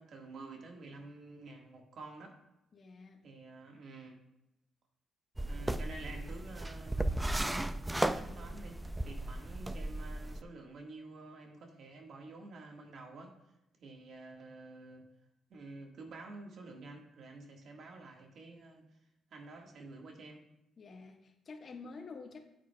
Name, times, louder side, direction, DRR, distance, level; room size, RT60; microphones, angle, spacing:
voice 1, 0.0-2.4 3.2-4.2 5.5-13.3 13.8-15.1 15.5-18.9 19.3-20.4, right 3 dB, 60° right, 1 dB, 1.6 m, -50 dB
voice 2, 2.7-3.2 20.8-22.4, left 4 dB, 45° left, 1 dB, 1.4 m, -49 dB
sound 1, 5.4-10.4, right 1 dB, 10° right, 0.4 m, -35 dB
8.9 x 8.7 x 2.3 m, 0.88 s
cardioid pair, 90°, 0 cm